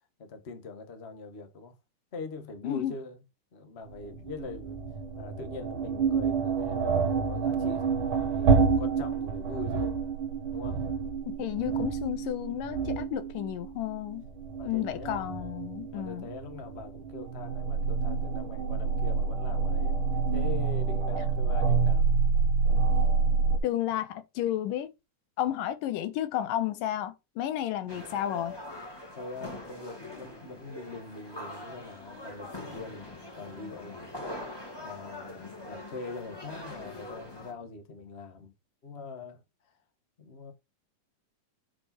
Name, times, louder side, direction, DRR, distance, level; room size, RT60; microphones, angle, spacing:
voice 1, 0.2-1.8 2.1-3.2 3.5-4.8 5.2-10.0 10.5-10.8 14.6-15.4 15.9-22.1 29.1-34.2 34.8-38.5 38.8-39.4 40.2-40.5, left 4 dB, 55° left, 0.6 m, -43 dB
voice 2, 2.6-2.9 11.4-14.3 14.6-16.3 23.6-24.9 25.4-28.6, left 12 dB, 80° left, 2.6 m, -32 dB
sound 1, 3.9-23.6, right 5 dB, 60° right, 1.4 m, -28 dB
sound 2, 27.9-37.5, left 1 dB, 10° left, 1.5 m, -43 dB
8.4 x 5.5 x 4.4 m
omnidirectional pair, 3.8 m